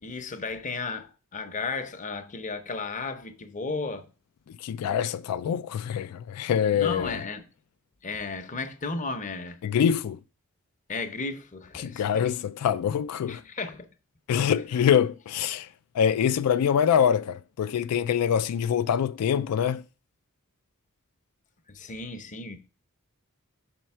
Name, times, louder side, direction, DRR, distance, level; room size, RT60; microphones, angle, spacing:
voice 1, 0.0-4.1 6.7-7.5 8.0-9.6 10.9-12.3 13.3-13.9 14.3-14.5 21.7-22.6, left 3 dB, 35° left, 0.7 m, -34 dB
voice 2, 4.6-7.1 9.6-10.2 11.8-13.4 14.3-15.7 15.9-19.8, left 8 dB, 90° left, 0.3 m, -25 dB
6.3 x 4.5 x 4.3 m
head